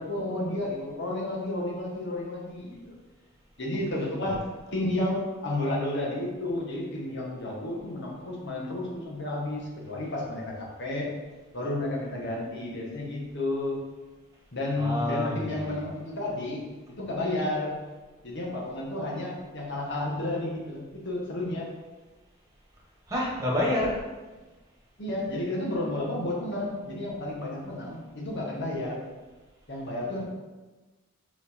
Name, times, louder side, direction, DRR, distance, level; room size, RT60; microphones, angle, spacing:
voice 1, 0.0-2.9 3.6-4.4 4.7-11.1 11.5-13.8 14.5-16.6 16.9-17.8 18.2-21.7 25.0-29.0 29.7-30.2, left 1 dB, 60° left, -3 dB, 1.5 m, -31 dB
voice 2, 14.8-15.8 23.1-24.0, left 1 dB, 15° right, -4 dB, 1.6 m, -28 dB
4.9 x 4.8 x 4.3 m, 1.2 s
head